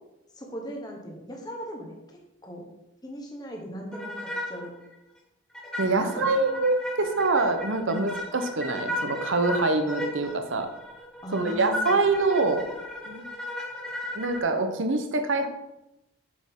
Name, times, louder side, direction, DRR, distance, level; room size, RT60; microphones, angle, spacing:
voice 1, 0.4-2.7 3.0-4.7 6.0-6.2 7.8-8.0 11.2-11.9, equal, 20° left, 1 dB, 1.2 m, -38 dB
sound 1, 3.9-4.7 4.9-5.0 5.5-14.4, left 1 dB, 5° left, 2.1 m, -35 dB
voice 2, 5.8-10.7 11.3-12.7 13.1-13.2 14.1-15.5, right 3 dB, 70° right, 7 dB, 0.9 m, -25 dB
7.7 x 6.5 x 3.7 m, 0.92 s
head